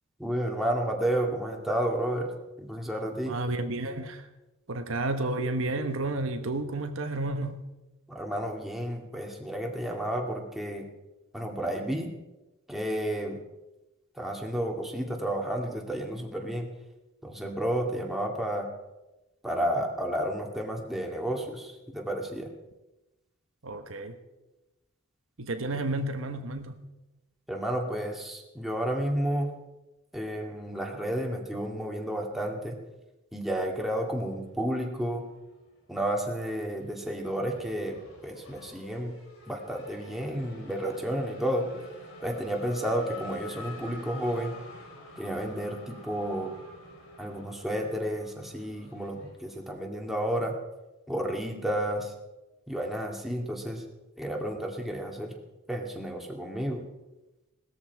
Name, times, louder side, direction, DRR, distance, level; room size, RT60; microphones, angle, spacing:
voice 1, 0.2-2.3 2.6-3.4 8.1-10.9 11.3-12.1 12.7-13.4 14.2-16.7 17.2-18.7 19.4-22.5 27.5-29.5 30.1-32.8 33.3-35.2 35.9-38.0 38.2-39.1 39.5-41.8 42.2-44.5 45.2-46.5 47.2-50.5 51.1-52.1 52.7-53.8 54.2-55.4 55.7-56.8, right 1 dB, ahead, 2.1 m, -31 dB
voice 2, 3.3-4.2 4.7-7.7 23.6-24.2 25.4-26.8, right 2 dB, 65° right, 1.2 m, -31 dB
Race car auto racing / Accelerating revving vroom, 34.7-35.7 36.0-49.7, left 1 dB, 75° left, 4.2 m, -48 dB
18.0 x 13.5 x 4.7 m
head